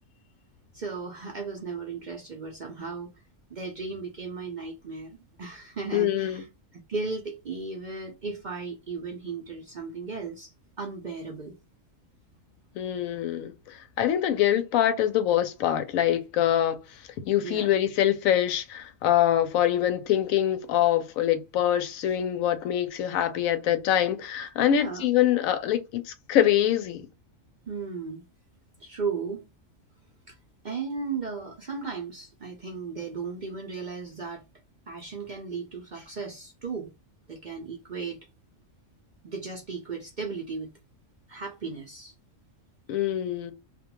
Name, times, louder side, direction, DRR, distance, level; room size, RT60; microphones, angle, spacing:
voice 1, 0.7-3.1 3.5-6.4 6.9-11.6 17.4-17.7 24.7-25.1 27.7-28.2 28.8-29.4 30.3-30.4 30.6-34.4 34.9-36.9 37.3-38.2 39.2-40.7 41.3-42.1, right 4 dB, 55° right, 0.5 m, -35 dB
voice 2, 5.9-6.4 12.7-27.1 42.9-43.5, left 11 dB, 85° left, 1.0 m, -24 dB
2.4 x 2.2 x 2.9 m
omnidirectional pair, 1.4 m